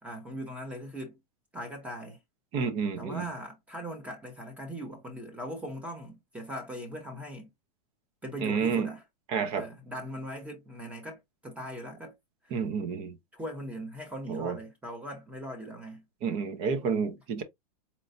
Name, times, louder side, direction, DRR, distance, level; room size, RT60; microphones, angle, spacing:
voice 1, 0.0-1.2 1.5-2.2 3.0-7.5 8.2-9.0 9.5-12.1 12.4-12.6 13.3-16.0, equal, 5° right, 0.9 m, -40 dB
voice 2, 2.5-3.3 8.4-8.9 9.3-9.7 12.5-13.2 14.3-14.6 16.2-17.4, right 6 dB, 30° right, 0.6 m, -30 dB
4.3 x 3.0 x 2.5 m
supercardioid pair, 165°, 19 cm